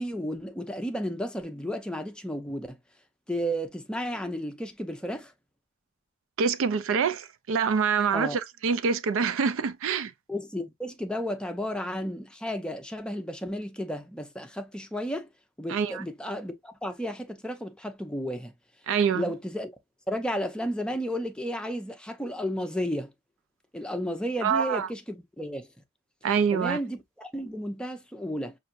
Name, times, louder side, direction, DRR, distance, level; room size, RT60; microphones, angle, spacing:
voice 1, 0.0-2.8 3.3-5.3 8.1-8.4 10.3-15.3 15.6-18.5 19.1-19.7 20.1-23.1 23.7-25.7 26.5-28.5, equal, 5° left, 0.6 m, -33 dB
voice 2, 6.4-10.1 15.7-16.0 18.9-19.2 24.4-24.9 26.2-26.8, right 6 dB, 65° right, 0.4 m, -25 dB
5.6 x 2.6 x 2.5 m
head